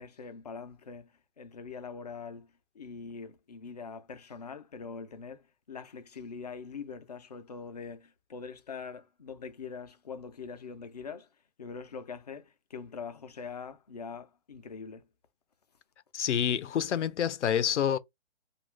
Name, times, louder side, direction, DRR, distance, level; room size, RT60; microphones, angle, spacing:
voice 1, 0.0-11.3 11.6-15.1, left 5 dB, 40° left, 0.4 m, -43 dB
voice 2, 16.1-18.0, left 9 dB, 90° left, 0.5 m, -27 dB
2.7 x 2.3 x 3.2 m
hypercardioid pair, 160°, 34 cm